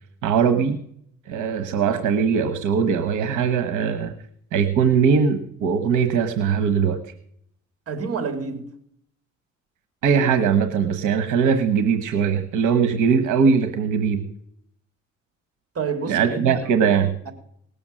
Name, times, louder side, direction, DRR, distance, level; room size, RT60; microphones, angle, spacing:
voice 1, 0.2-0.8 1.3-4.1 4.5-7.0 10.0-14.2 16.1-17.1, right 6 dB, 85° right, 1.2 m, -20 dB
voice 2, 7.9-8.7 15.7-16.6 17.3-17.4, right 5 dB, 50° right, 3.1 m, -28 dB
18.5 x 7.0 x 7.6 m
cardioid pair, 90°, 30 cm